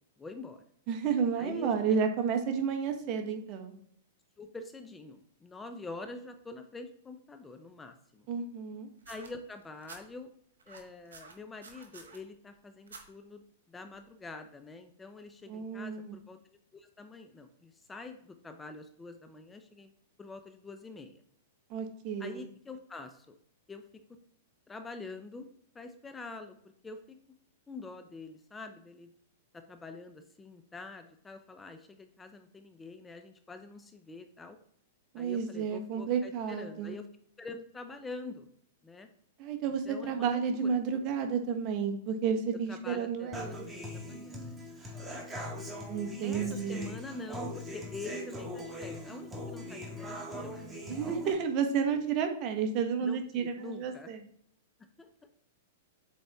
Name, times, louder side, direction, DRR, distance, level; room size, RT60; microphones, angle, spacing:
voice 1, 0.2-0.6 1.4-1.7 2.0-2.1 4.4-8.3 9.1-10.3 10.7-13.4 13.7-16.4 16.7-19.9 20.2-21.2 22.2-23.4 23.7-23.8 24.7-25.5 25.7-26.5 26.8-27.2 27.7-29.1 29.5-34.6 35.2-37.0 37.4-38.5 38.8-39.1 39.9-40.8 42.7-44.6 46.2-50.7 53.0-54.1 55.0-55.1, left 3 dB, 10° left, 7 dB, 0.6 m, -46 dB
voice 2, 0.9-3.8 8.3-8.9 15.5-16.2 21.7-22.5 35.1-37.0 39.4-43.7 45.9-46.9 50.9-54.2, right 6 dB, 40° right, 5 dB, 1.2 m, -31 dB
sound 1, 9.0-10.0 10.6-12.2 12.9-13.1 14.0-14.1, right 4 dB, 90° right, 1.2 m, -50 dB
Human voice / Acoustic guitar, 43.3-51.3, left 1 dB, 10° right, 1.7 m, -41 dB
7.7 x 4.1 x 3.5 m, 0.66 s
hypercardioid pair, 125°, 0 cm